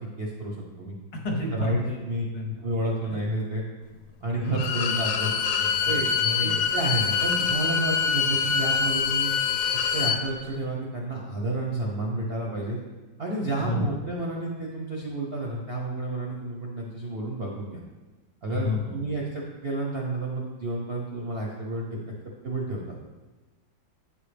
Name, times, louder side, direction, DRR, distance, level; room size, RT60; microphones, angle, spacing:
voice 1, 0.2-1.0 1.5-1.8 2.0-2.3 2.6-3.6 4.2-5.3 5.8-6.1 6.4-9.3 9.9-12.8 13.2-17.8 18.4-18.7 18.9-22.0 22.4-23.0, right 2 dB, 55° right, -2 dB, 0.7 m, -30 dB
voice 2, 1.1-2.6 3.0-3.2 4.3-5.3 5.6-6.7 13.6-14.0 18.5-19.0, left 2 dB, 60° left, 1 dB, 1.3 m, -32 dB
Bowed string instrument, 4.5-10.2, left 6 dB, 85° left, 1.3 m, -25 dB
8.1 x 5.5 x 3.3 m, 1.2 s
omnidirectional pair, 2.1 m